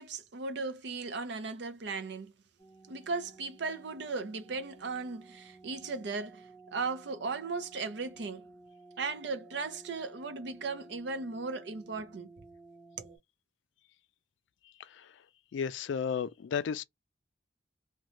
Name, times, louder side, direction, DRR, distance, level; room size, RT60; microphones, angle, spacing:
voice 1, 0.0-2.3 2.9-8.5 9.0-12.3 13.0-13.2, right 4 dB, 60° right, 0.5 m, -37 dB
sound 1, 2.6-13.2, right 2 dB, 5° left, 0.6 m, -55 dB
voice 2, 14.8-15.1 15.5-16.8, left 7 dB, 70° left, 0.3 m, -33 dB
2.6 x 2.2 x 3.0 m
head